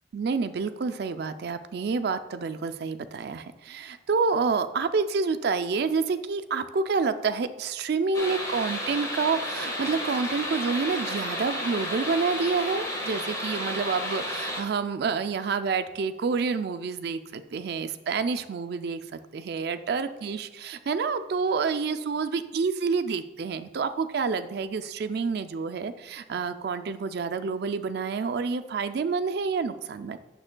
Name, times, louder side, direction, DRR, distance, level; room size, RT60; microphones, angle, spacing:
voice 1, 0.1-30.2, right 5 dB, 60° right, 9 dB, 0.4 m, -28 dB
sound 1, 8.1-14.6, left 1 dB, 20° left, 1.4 m, -32 dB
8.7 x 6.7 x 2.2 m, 1.1 s
head